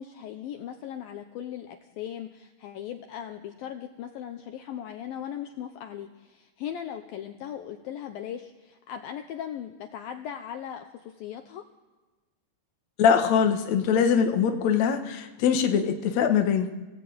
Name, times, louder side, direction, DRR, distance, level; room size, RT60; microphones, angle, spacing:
voice 1, 0.0-11.6, left 9 dB, 70° left, 5 dB, 2.4 m, -38 dB
voice 2, 13.0-16.7, left 7 dB, 55° left, 4 dB, 2.2 m, -22 dB
28.5 x 17.5 x 8.8 m, 1.2 s
omnidirectional pair, 4.9 m